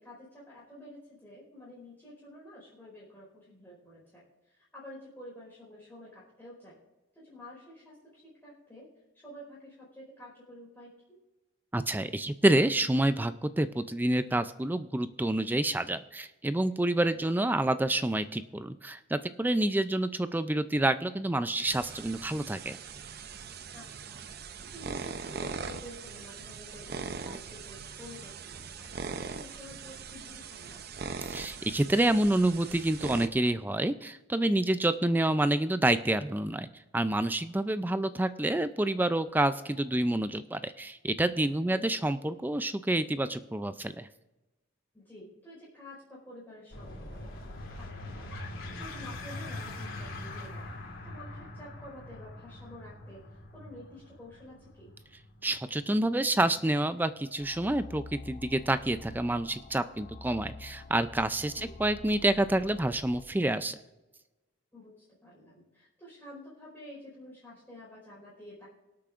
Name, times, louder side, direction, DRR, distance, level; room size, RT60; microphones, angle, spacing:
voice 1, 0.0-6.8 7.1-8.9 9.2-11.2 17.1-17.2 23.7-31.0 41.7-41.9 44.9-50.7 51.0-54.9 61.5-61.8 64.7-68.7, left 1 dB, 10° left, -6 dB, 4.5 m, -50 dB
voice 2, 11.7-22.8 31.3-36.7 36.9-44.1 55.4-63.8, right 1 dB, 10° right, 12 dB, 0.3 m, -28 dB
sound 1, 21.6-33.3, right 5 dB, 50° right, 0.6 m, -41 dB
sound 2, 46.7-57.8, left 2 dB, 75° left, 2.9 m, -43 dB
sound 3, 57.4-63.2, left 2 dB, 40° left, 1.7 m, -47 dB
24.5 x 8.6 x 2.5 m, 1.1 s
head